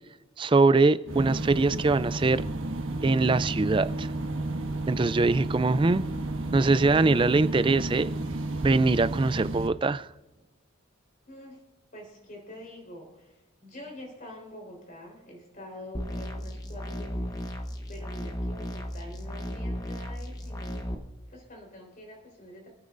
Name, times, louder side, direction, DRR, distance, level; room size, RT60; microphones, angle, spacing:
voice 1, 0.4-2.4 3.0-4.1 4.9-6.0 6.5-8.1 8.6-10.1, right 3 dB, 25° right, 15 dB, 0.3 m, -23 dB
sound 1, 1.1-9.7, right 2 dB, 70° right, 1.4 m, -32 dB
voice 2, 11.3-11.6 11.9-22.7, left 1 dB, 40° left, 0 dB, 4.0 m, -46 dB
sound 2, 15.9-20.9, equal, 20° left, 0.9 m, -35 dB
27.0 x 9.2 x 2.6 m, 1.1 s
head